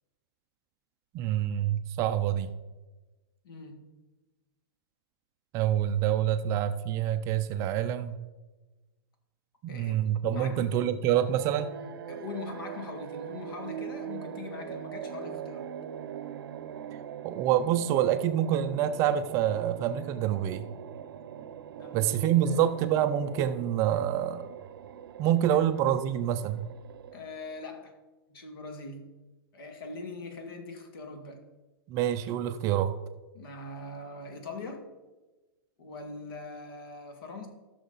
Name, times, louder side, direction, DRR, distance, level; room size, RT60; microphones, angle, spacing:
voice 1, 1.1-2.5 5.5-8.2 9.6-11.7 17.2-20.7 21.9-24.5 25.2-26.6 31.9-33.0, right 10 dB, 25° right, 9 dB, 0.4 m, -27 dB
voice 2, 3.4-3.9 9.7-10.7 12.1-15.7 21.8-22.7 27.1-27.9 28.3-29.1 29.5-31.4 33.3-34.8 35.8-37.5, left 3 dB, 70° left, 4 dB, 2.1 m, -42 dB
sound 1, 11.0-27.6, right 9 dB, 70° right, 0.7 m, -42 dB
14.0 x 6.4 x 3.9 m, 1.2 s
hypercardioid pair, 155°, 13 cm